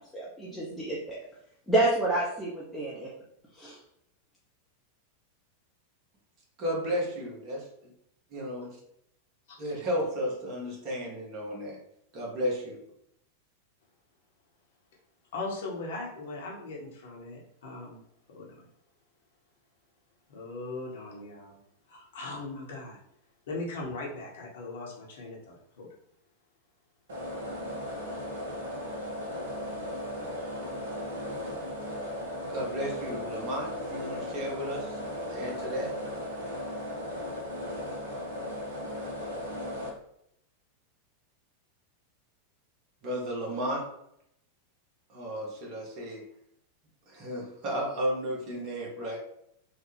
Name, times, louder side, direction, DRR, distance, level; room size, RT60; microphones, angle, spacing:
voice 1, 0.1-1.2 1.7-3.1 3.6-3.8, right 2 dB, 5° left, -6 dB, 0.6 m, -28 dB
voice 2, 6.6-7.7 8.3-8.8 9.6-11.8 12.1-12.8 32.5-35.9 36.6-36.7 43.0-43.8 45.1-46.2 47.1-49.2, equal, 40° right, -2 dB, 1.1 m, -33 dB
voice 3, 15.3-18.0 18.3-18.5 20.3-21.6 21.9-23.0 23.5-25.9, left 2 dB, 60° left, -2 dB, 0.9 m, -39 dB
sound 1, 27.1-39.9, left 1 dB, 60° right, 0.7 m, -36 dB
3.2 x 2.1 x 3.2 m, 0.74 s
figure-of-eight pair, 90°, 0 cm